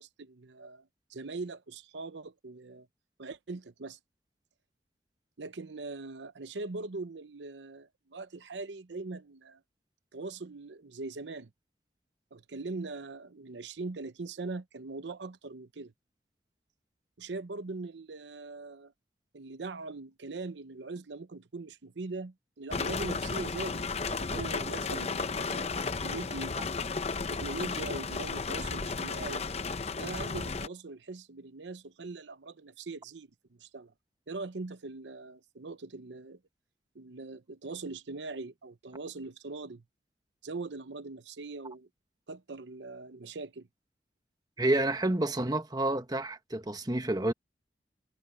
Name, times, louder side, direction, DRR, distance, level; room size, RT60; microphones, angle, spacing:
voice 1, 0.0-2.9 3.2-4.0 5.4-9.6 10.1-11.5 12.3-15.9 17.2-18.9 19.3-26.6 27.3-29.4 30.0-33.9 34.3-36.4 36.9-39.8 40.4-41.9 42.3-43.7, right 3 dB, 90° right, 0.8 m, -41 dB
sound 1, 22.7-30.7, left 4 dB, 35° left, 0.7 m, -34 dB
voice 2, 44.6-47.3, right 1 dB, 25° right, 1.3 m, -29 dB
head